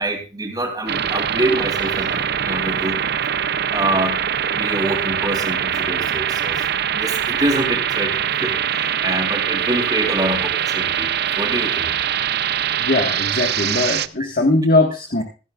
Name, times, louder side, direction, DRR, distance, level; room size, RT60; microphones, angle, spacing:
voice 1, 0.0-3.0 3.7-6.7 6.9-11.1 11.3-11.9, right 1 dB, 20° right, 4 dB, 3.3 m, -25 dB
sound 1, 0.9-14.1, right 9 dB, 60° right, 0.6 m, -23 dB
voice 2, 12.8-15.2, left 2 dB, 50° left, 4 dB, 1.5 m, -19 dB
16.0 x 14.5 x 2.4 m, 0.33 s
head